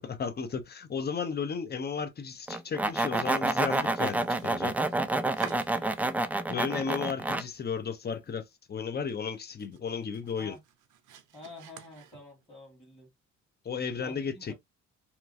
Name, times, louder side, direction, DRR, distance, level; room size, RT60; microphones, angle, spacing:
voice 1, 0.0-4.7 6.5-10.5 13.6-14.5, left 6 dB, 35° left, 0.7 m, -34 dB
sound 1, 2.5-7.4, right 2 dB, 5° right, 0.3 m, -28 dB
Domestic sounds home sounds, 4.0-6.5 6.8-7.5 7.9-8.0 8.4-8.5 8.9-12.6, right 10 dB, 75° right, 0.7 m, -49 dB
voice 2, 5.3-6.2 10.4-10.6 11.3-13.1 14.0-14.5, left 2 dB, 15° left, 1.5 m, -49 dB
2.9 x 2.3 x 2.5 m
cardioid pair, 90°, 30 cm